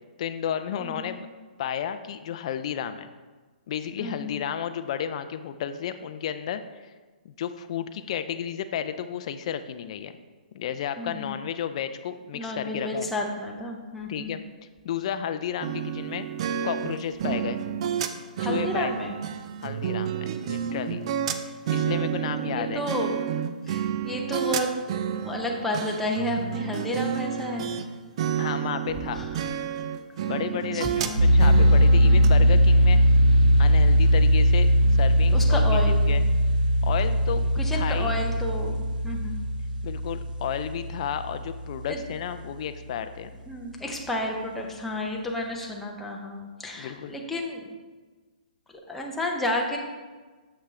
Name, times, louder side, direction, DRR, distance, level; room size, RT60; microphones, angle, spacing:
voice 1, 0.2-1.3 1.6-3.1 3.7-6.6 7.2-10.1 10.5-13.1 14.1-14.4 14.8-16.3 16.6-17.6 18.4-18.9 19.6-21.0 21.7-22.8 28.4-29.2 30.2-33.0 33.6-34.7 35.0-36.2 36.8-37.5 37.7-38.3 39.8-43.3 46.8-47.2, left 9 dB, 45° left, 10 dB, 0.4 m, -32 dB
voice 2, 0.8-1.2 4.0-4.4 11.0-11.4 12.3-14.4 17.2-17.5 18.4-19.1 22.2-23.2 23.7-24.7 25.1-27.7 28.3-28.5 29.1-29.3 30.7-31.2 32.0-32.6 35.3-36.2 37.6-39.4 41.9-42.0 43.5-47.7 48.9-49.8, left 1 dB, 5° left, -1 dB, 0.6 m, -31 dB
sound 1, 15.6-27.9 28.2-32.3, right 9 dB, 40° right, 0.4 m, -30 dB
sound 2, 31.2-42.0, equal, 75° right, 0.7 m, -20 dB
6.8 x 5.8 x 3.2 m, 1.3 s
hypercardioid pair, 155°, 5 cm